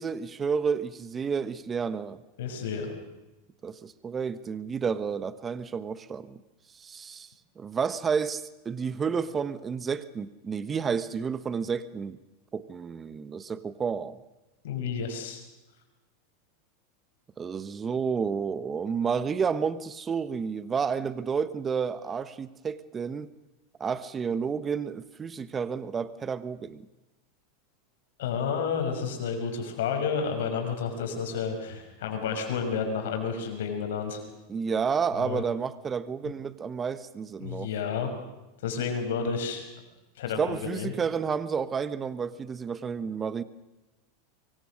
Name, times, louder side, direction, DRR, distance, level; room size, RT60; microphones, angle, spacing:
voice 1, 0.0-2.2 3.6-6.4 6.8-7.3 7.6-12.2 12.5-14.2 17.4-23.3 23.8-26.9 34.5-37.7 40.4-43.4, right 6 dB, 25° right, 15 dB, 1.2 m, -30 dB
voice 2, 2.4-2.9 14.6-15.4 28.2-34.2 35.2-35.4 37.4-38.1 38.6-39.6 40.2-40.9, left 6 dB, 75° left, 5 dB, 6.0 m, -31 dB
24.5 x 24.5 x 6.5 m, 1.0 s
hypercardioid pair, 100°, 0 cm